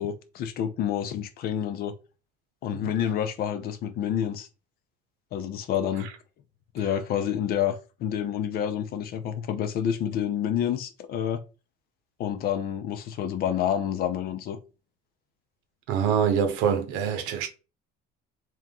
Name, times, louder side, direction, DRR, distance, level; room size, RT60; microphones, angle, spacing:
voice 1, 0.0-2.0 2.6-4.5 5.3-6.1 6.7-11.4 12.2-14.6, left 9 dB, 50° left, 0.7 m, -28 dB
voice 2, 15.9-17.5, right 7 dB, 75° right, 1.0 m, -25 dB
3.6 x 3.0 x 3.7 m
cardioid pair, 130°, 20 cm